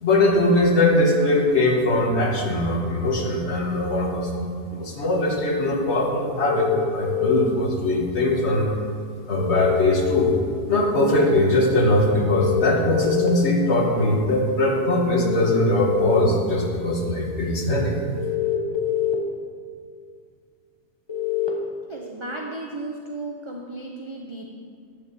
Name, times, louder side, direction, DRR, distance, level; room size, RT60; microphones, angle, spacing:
voice 1, 0.0-8.7 9.3-10.3 10.7-18.0, left 1 dB, 50° left, -1 dB, 1.8 m, -21 dB
sound 1, 6.4-7.4 9.4-10.4 12.3-13.3 15.2-16.2 18.2-19.1 21.1-21.5, left 12 dB, 20° left, 1.0 m, -24 dB
voice 2, 21.8-24.5, right 2 dB, 30° right, 0 dB, 0.6 m, -34 dB
10.5 x 5.6 x 7.0 m, 2.3 s
omnidirectional pair, 1.5 m